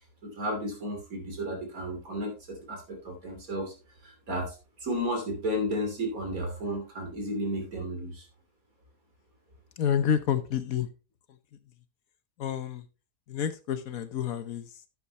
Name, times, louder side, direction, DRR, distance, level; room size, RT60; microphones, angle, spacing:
voice 1, 0.2-2.4 2.7-3.7 4.0-8.2, equal, 65° right, 2 dB, 3.5 m, -33 dB
voice 2, 9.8-10.9 12.4-12.8 13.3-14.6, left 8 dB, 70° left, 12 dB, 1.3 m, -28 dB
10.5 x 8.6 x 2.9 m, 0.29 s
omnidirectional pair, 1.6 m